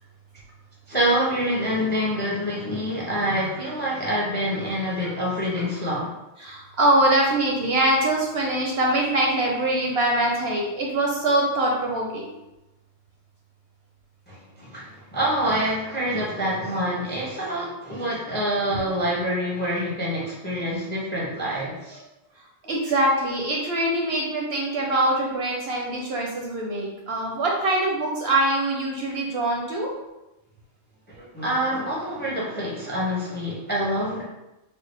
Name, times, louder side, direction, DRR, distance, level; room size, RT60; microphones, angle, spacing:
voice 1, 0.9-6.1 14.3-22.0 31.3-34.2, equal, 10° left, -5 dB, 0.5 m, -26 dB
voice 2, 6.4-12.3 22.7-29.9, right 1 dB, 65° right, -1 dB, 0.7 m, -23 dB
4.0 x 2.0 x 3.2 m, 0.99 s
omnidirectional pair, 1.3 m